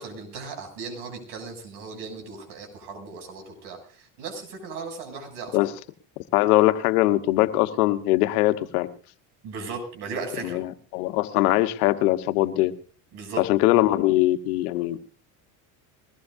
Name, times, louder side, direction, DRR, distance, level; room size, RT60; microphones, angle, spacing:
voice 1, 0.0-5.7 9.4-10.6 13.1-13.4, right 4 dB, 65° right, 7.7 m, -37 dB
voice 2, 6.3-8.9 10.4-10.7 10.9-12.7 13.5-15.0, left 16 dB, 90° left, 1.3 m, -21 dB
22.0 x 19.5 x 2.7 m
supercardioid pair, 100°, 44 cm